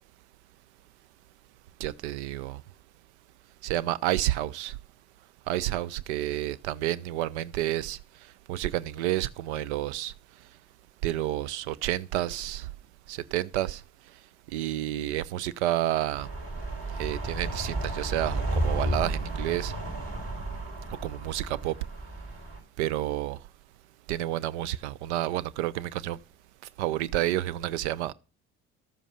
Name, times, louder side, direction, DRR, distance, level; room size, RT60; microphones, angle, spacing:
voice 1, 1.8-2.6 3.6-4.8 5.5-10.1 11.0-12.7 13.1-13.8 14.1-14.2 14.5-16.3 16.9-19.7 20.9-21.8 22.8-23.4 24.1-26.2 26.8-28.1, right 13 dB, 75° right, 0.5 m, -30 dB
sound 1, 16.1-22.6, right 1 dB, 45° right, 5.6 m, -32 dB
12.5 x 7.0 x 5.6 m
hypercardioid pair, 55°, 35 cm